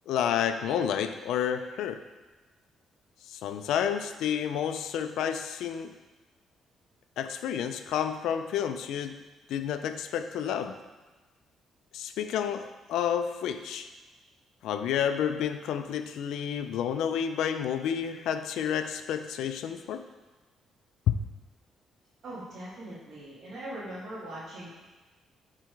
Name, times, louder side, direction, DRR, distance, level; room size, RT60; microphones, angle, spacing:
voice 1, 0.1-2.0 3.3-6.0 7.2-9.2 9.5-10.8 11.9-13.9 14.6-20.1, left 8 dB, 85° left, 9 dB, 0.4 m, -30 dB
voice 2, 22.2-24.7, right 1 dB, 50° right, -10 dB, 2.0 m, -41 dB
6.7 x 4.1 x 4.6 m, 1.2 s
cardioid pair, 120°, 0 cm